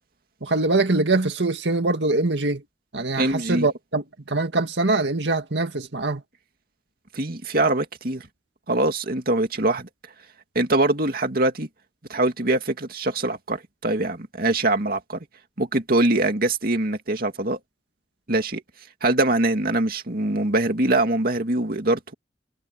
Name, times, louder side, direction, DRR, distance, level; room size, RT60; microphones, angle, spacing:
voice 1, 0.4-2.6 2.9-6.2, right 2 dB, 90° right, 1.9 m, -23 dB
voice 2, 3.2-3.7 7.1-8.2 8.7-9.9 10.5-11.7 12.1-15.2 15.6-17.6 18.3-18.6 19.0-22.1, right 2 dB, 55° right, 2.4 m, -23 dB
head